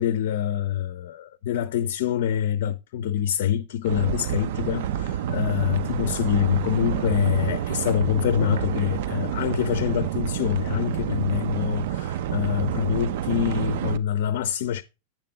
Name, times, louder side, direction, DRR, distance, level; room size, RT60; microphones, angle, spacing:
voice 1, 0.0-14.8, left 10 dB, 55° left, 0.6 m, -25 dB
sound 1, 3.8-14.0, right 10 dB, 55° right, 0.5 m, -28 dB
8.8 x 7.4 x 3.7 m
figure-of-eight pair, 90°, 0 cm